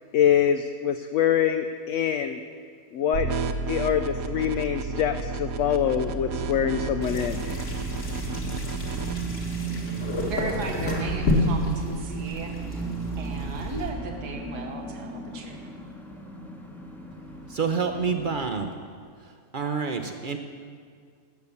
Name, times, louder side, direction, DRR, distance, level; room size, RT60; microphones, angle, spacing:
voice 1, 0.1-2.4 2.9-3.3 3.7-7.6, left 9 dB, 70° left, 8 dB, 0.7 m, -24 dB
sound 1, 3.1-9.1, right 4 dB, 65° right, 1.1 m, -31 dB
sound 2, 6.0-18.4, right 3 dB, ahead, 0.9 m, -36 dB
sound 3, 7.0-13.9, left 1 dB, 50° left, 2.2 m, -30 dB
voice 2, 10.0-12.8 13.2-15.6, right 3 dB, 85° right, 2 dB, 1.8 m, -36 dB
voice 3, 17.5-18.7 19.5-20.4, right 5 dB, 50° right, 6 dB, 0.6 m, -27 dB
17.0 x 6.7 x 7.0 m, 2.1 s
omnidirectional pair, 1.7 m